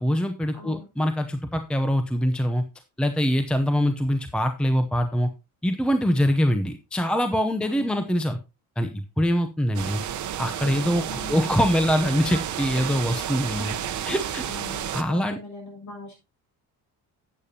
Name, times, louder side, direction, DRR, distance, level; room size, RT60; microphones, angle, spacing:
voice 1, 0.0-2.6 3.0-5.3 5.6-8.4 8.8-10.0 10.4-13.7 14.1-14.4 14.9-15.4, equal, 5° left, 7 dB, 0.7 m, -24 dB
voice 2, 0.5-0.9 7.6-8.1 11.0-11.6 13.4-14.1 14.4-16.2, left 1 dB, 50° left, 1 dB, 6.6 m, -41 dB
sound 1, 9.7-15.0, right 10 dB, 50° right, 1.0 m, -31 dB
12.0 x 8.7 x 2.8 m, 0.26 s
cardioid pair, 140°, 37 cm